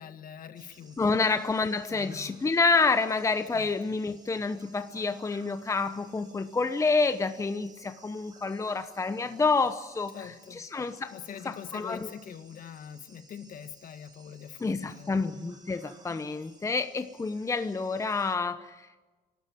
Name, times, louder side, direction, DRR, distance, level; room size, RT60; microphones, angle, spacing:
voice 1, 0.0-1.2 1.9-2.3 3.5-3.7 10.1-10.6 11.1-15.2, left 8 dB, 55° left, 9 dB, 1.9 m, -43 dB
sound 1, 0.5-18.4, right 3 dB, 25° right, 5.3 m, -58 dB
voice 2, 1.0-11.1 11.4-12.1 14.6-18.9, left 4 dB, 15° left, 10 dB, 0.9 m, -28 dB
26.0 x 12.5 x 9.9 m, 1.3 s
cardioid pair, 110°, 17 cm